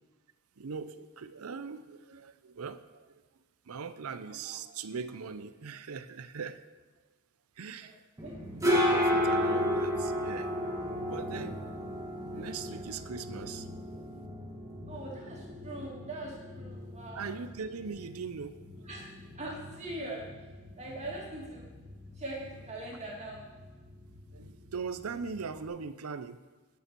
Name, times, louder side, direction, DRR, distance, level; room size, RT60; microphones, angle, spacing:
voice 1, 0.6-3.2 3.7-6.6 7.6-8.0 8.5-10.5 11.1-11.6 12.2-14.0 17.1-18.6 24.3-26.5, right 5 dB, 80° right, 13 dB, 0.6 m, -40 dB
sound 1, 8.2-25.7, equal, 15° right, 1.7 m, -34 dB
voice 2, 14.9-17.4 18.9-20.5 20.8-21.7 22.2-23.5, right 1 dB, 30° right, -3 dB, 2.4 m, -42 dB
9.4 x 7.0 x 6.1 m, 1.3 s
head